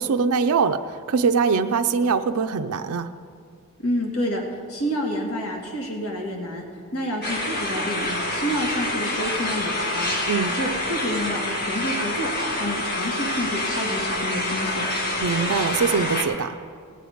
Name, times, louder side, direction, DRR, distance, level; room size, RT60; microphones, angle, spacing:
voice 1, 0.0-3.1 10.3-10.6 15.2-16.6, right 5 dB, 80° right, 7 dB, 0.5 m, -22 dB
voice 2, 3.8-4.4 4.7-6.6 6.9-10.1 10.5-12.3 12.5-14.9, equal, 80° left, 0 dB, 1.8 m, -28 dB
sound 1, 7.2-16.2, left 1 dB, 45° left, 1.6 m, -27 dB
18.5 x 7.8 x 5.0 m, 2.3 s
head